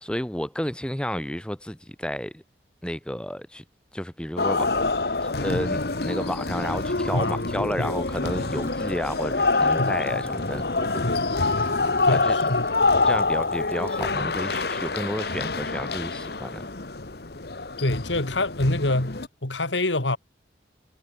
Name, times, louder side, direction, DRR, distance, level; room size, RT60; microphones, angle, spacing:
voice 1, 0.0-2.4 2.8-3.6 3.9-4.7 5.2-10.7 12.1-12.4 13.0-16.7, equal, 5° left, 1.1 m, -31 dB
sound 1, 4.4-19.3, left 3 dB, 60° left, 1.3 m, -26 dB
sound 2, 5.1-15.4 15.7-15.8, right 1 dB, 15° right, 3.7 m, -48 dB
voice 2, 7.1-7.9 9.8-10.2 11.0-11.3 12.0-12.7 17.8-20.2, left 2 dB, 90° left, 3.0 m, -26 dB
head